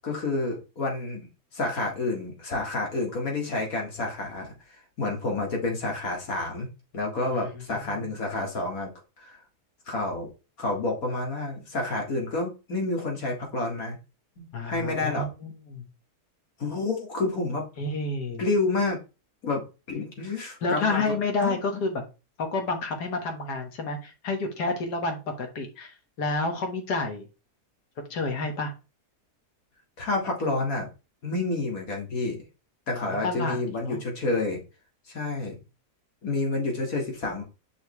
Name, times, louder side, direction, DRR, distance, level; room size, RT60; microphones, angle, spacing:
voice 1, 0.0-1.3 1.5-8.9 9.2-9.4 9.9-10.3 10.6-14.0 14.4-15.3 16.6-17.6 18.4-19.0 19.4-19.6 19.9-21.1 21.4-21.6 30.0-30.9 31.2-32.4 32.9-34.6 35.1-35.6 36.2-37.4, left 2 dB, 60° left, 1 dB, 2.3 m, -29 dB
voice 2, 7.3-8.0 14.5-15.9 17.8-18.5 20.6-22.0 22.4-27.3 28.1-28.7 32.9-33.6 33.8-34.0, left 3 dB, 85° left, 4 dB, 2.0 m, -30 dB
6.1 x 5.7 x 3.1 m, 0.30 s
omnidirectional pair, 1.7 m